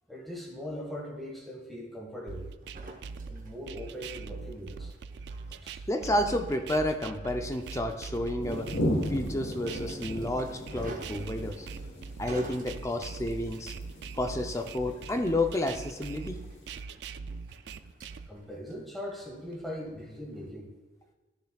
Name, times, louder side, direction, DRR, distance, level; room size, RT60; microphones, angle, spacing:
voice 1, 0.1-2.5 3.3-4.9 5.6-5.9 18.3-20.7, equal, ahead, -2 dB, 1.5 m, -40 dB
sound 1, 2.3-18.3, right 4 dB, 65° right, 0.3 m, -41 dB
sound 2, 2.6-20.5, right 2 dB, 45° right, 0.9 m, -51 dB
voice 2, 5.9-8.7 9.1-11.7 12.2-13.7 14.2-16.4, left 1 dB, 15° left, 5 dB, 0.5 m, -30 dB
sound 3, 8.4-16.8, equal, 75° left, 1.2 m, -37 dB
12.0 x 6.9 x 2.3 m, 1.3 s
head